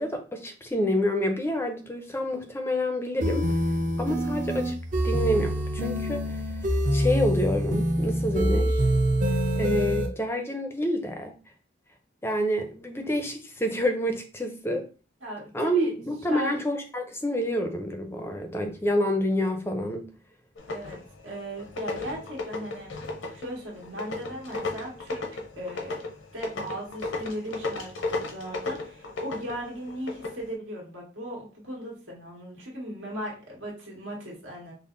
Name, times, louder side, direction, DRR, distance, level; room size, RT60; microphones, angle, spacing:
voice 1, 0.0-3.4 4.0-4.7 5.0-8.8 9.6-11.3 12.2-14.8 15.5-20.1, equal, 15° left, 5 dB, 0.4 m, -28 dB
sound 1, 3.2-10.1, equal, 45° right, 0.6 m, -25 dB
voice 2, 15.2-15.9 16.3-16.6 20.7-22.9 23.3-26.0 26.3-34.7, equal, 85° right, -3 dB, 1.6 m, -37 dB
sound 2, 20.6-21.2 21.6-30.4, left 3 dB, 80° left, 0.7 m, -34 dB
5.4 x 2.0 x 2.5 m, 0.36 s
head